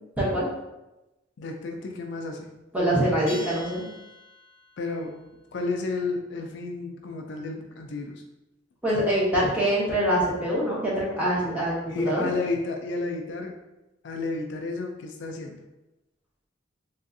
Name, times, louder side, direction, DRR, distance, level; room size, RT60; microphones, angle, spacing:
voice 1, 0.2-0.5 2.7-3.8 8.8-12.3, right 1 dB, 5° right, -7 dB, 0.8 m, -24 dB
voice 2, 1.4-2.6 4.8-5.3 5.5-8.2 11.9-13.5 14.0-15.6, left 3 dB, 60° left, 2 dB, 0.4 m, -31 dB
Bell, 3.3-4.8, left 1 dB, 50° right, 1.4 m, -43 dB
3.4 x 2.4 x 2.6 m, 0.99 s
head